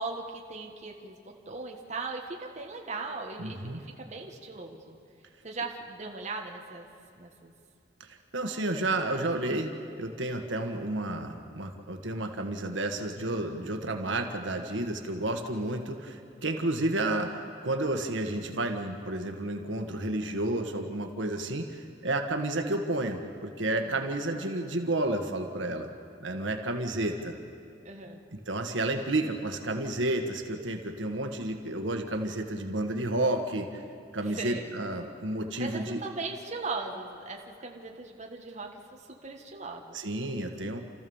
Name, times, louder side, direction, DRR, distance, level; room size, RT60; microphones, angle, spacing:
voice 1, 0.0-5.0 5.4-6.9 7.1-7.5 27.8-28.2 34.2-34.7 35.6-40.0, right 3 dB, 40° right, 1 dB, 1.6 m, -39 dB
voice 2, 3.4-3.8 8.0-25.9 26.2-27.3 28.5-33.8 34.1-36.0 39.9-40.8, right 2 dB, 85° right, 4 dB, 1.5 m, -31 dB
29.5 x 14.0 x 7.1 m, 2.5 s
head